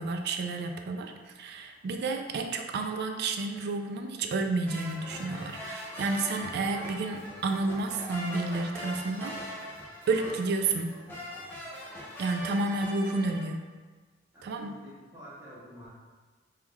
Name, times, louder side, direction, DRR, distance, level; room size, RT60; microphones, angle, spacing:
voice 1, 0.0-9.7 10.1-10.9 12.2-13.6 14.4-14.7, right 3 dB, 55° right, 5 dB, 0.3 m, -31 dB
sound 1, 4.7-13.4, equal, 10° left, 0.6 m, -41 dB
voice 2, 14.3-15.9, equal, 15° right, -13 dB, 0.9 m, -48 dB
3.5 x 3.0 x 2.2 m, 1.4 s
head